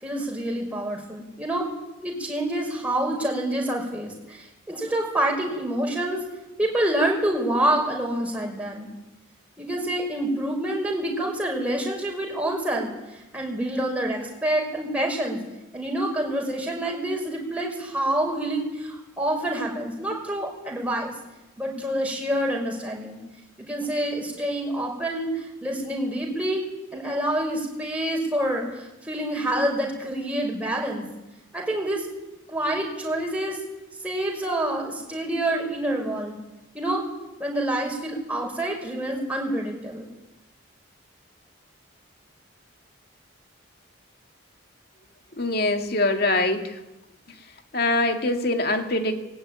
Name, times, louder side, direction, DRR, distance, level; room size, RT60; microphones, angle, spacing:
voice 1, 0.0-1.7 2.0-6.2 6.6-8.9 9.6-15.4 15.7-21.1 21.6-23.2 23.6-26.6 26.9-31.1 31.5-32.1 32.5-33.6 34.0-36.4 36.7-37.0 37.4-40.1, right 1 dB, 5° right, 0 dB, 5.7 m, -27 dB
voice 2, 45.4-46.8 47.7-49.1, left 2 dB, 50° left, 5 dB, 2.4 m, -23 dB
20.0 x 17.0 x 9.8 m, 0.99 s
head